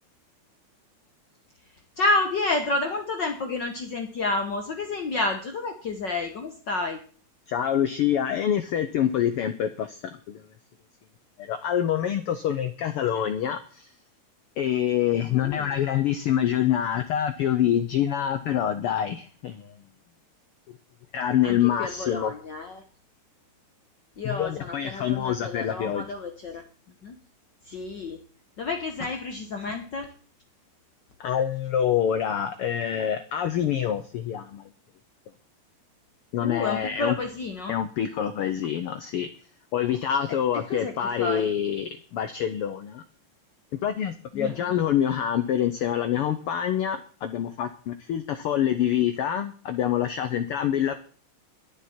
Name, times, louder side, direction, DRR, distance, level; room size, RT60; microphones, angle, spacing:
voice 1, 2.0-7.0 15.3-15.7 21.4-22.8 24.2-26.6 27.0-27.2 27.7-28.2 28.6-30.1 36.4-37.8 40.5-40.9 41.2-41.5 44.3-44.8, left 3 dB, 65° left, 5 dB, 1.1 m, -30 dB
voice 2, 7.5-10.4 11.4-13.9 14.6-19.7 21.1-22.3 24.2-26.1 31.2-34.7 36.3-37.2 37.7-39.3 39.7-43.0 43.7-50.9, left 10 dB, 85° left, 10 dB, 1.2 m, -26 dB
22.0 x 7.4 x 4.3 m, 0.41 s
omnidirectional pair, 3.4 m